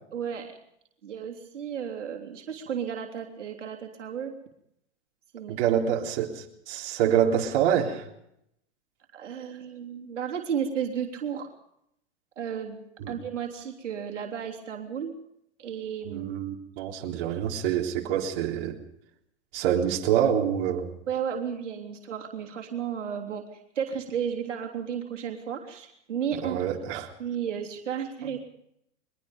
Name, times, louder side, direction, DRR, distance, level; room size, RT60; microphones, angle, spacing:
voice 1, 0.1-0.5 1.0-4.3 5.3-5.6 9.1-11.5 12.4-12.8 13.1-15.1 15.6-16.3 21.1-26.6 27.2-28.4, right 8 dB, 80° right, 3.5 m, -33 dB
voice 2, 5.5-8.1 13.0-13.1 16.1-18.8 19.5-20.9 26.3-27.1, right 9 dB, 50° right, 3.8 m, -26 dB
23.0 x 21.5 x 5.3 m
hypercardioid pair, 115°, 36 cm